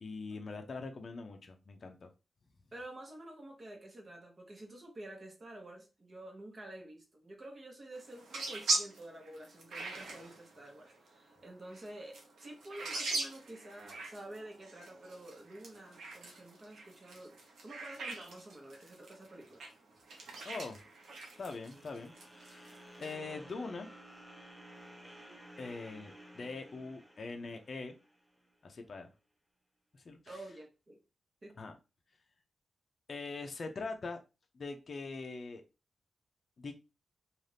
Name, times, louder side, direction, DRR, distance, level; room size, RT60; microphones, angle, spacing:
voice 1, 0.0-2.1 20.4-20.8 21.4-23.9 25.6-27.9 28.6-29.1 29.9-30.4 31.6-31.7 33.1-34.2 34.5-35.6 36.6-36.7, left 3 dB, 50° left, 5 dB, 0.5 m, -43 dB
voice 2, 2.7-19.6 30.3-31.0 31.4-31.5, right 1 dB, 35° right, 2 dB, 0.9 m, -49 dB
sound 1, 7.9-23.1, right 2 dB, 90° right, 0.7 m, -41 dB
sound 2, 20.3-28.5, right 1 dB, 5° right, 0.5 m, -55 dB
2.5 x 2.4 x 3.3 m, 0.28 s
wide cardioid pair, 105°, 0 cm